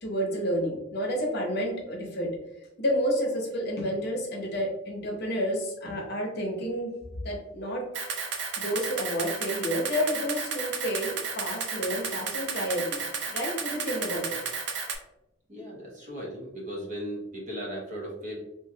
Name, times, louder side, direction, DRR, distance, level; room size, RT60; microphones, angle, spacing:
voice 1, 0.0-2.3 2.8-6.9 7.2-7.8 8.6-14.4, equal, 55° left, 0 dB, 0.7 m, -30 dB
Camera, 7.9-15.0, right 5 dB, 60° right, 0.5 m, -33 dB
voice 2, 15.5-18.4, equal, 40° right, -3 dB, 0.8 m, -37 dB
2.9 x 2.5 x 2.7 m, 0.88 s
head